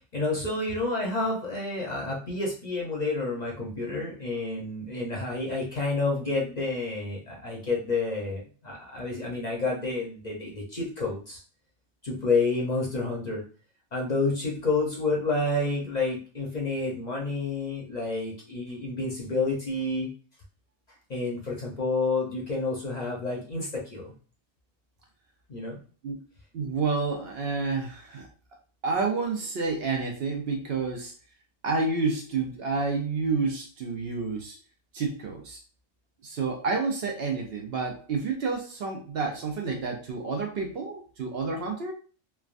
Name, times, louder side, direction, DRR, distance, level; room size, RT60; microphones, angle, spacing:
voice 1, 0.0-11.4 12.0-13.4 13.9-20.1 21.1-24.1 25.5-25.8, left 3 dB, 40° left, -3 dB, 0.7 m, -29 dB
voice 2, 26.5-28.3 28.8-31.1 31.6-34.6 34.9-35.6 36.2-41.9, right 4 dB, 60° right, 2 dB, 0.7 m, -29 dB
3.3 x 2.2 x 2.4 m, 0.38 s
omnidirectional pair, 1.3 m